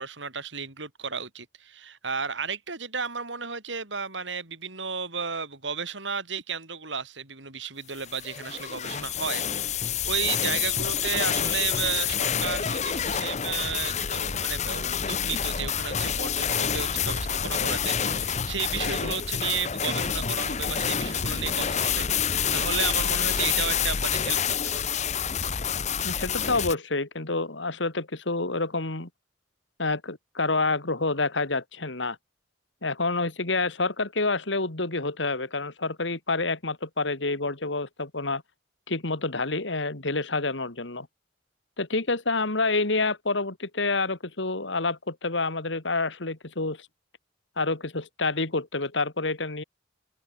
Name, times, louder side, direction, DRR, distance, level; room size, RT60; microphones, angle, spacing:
voice 1, 0.0-9.6 10.1-25.0, right 6 dB, 80° right, 5.6 m, -33 dB
sound 1, 8.0-26.7, left 7 dB, 40° left, 0.9 m, -28 dB
voice 2, 26.0-29.1 29.8-32.2 32.8-38.4 38.9-41.1 41.8-46.9 47.6-49.6, left 3 dB, 75° left, 2.6 m, -28 dB
head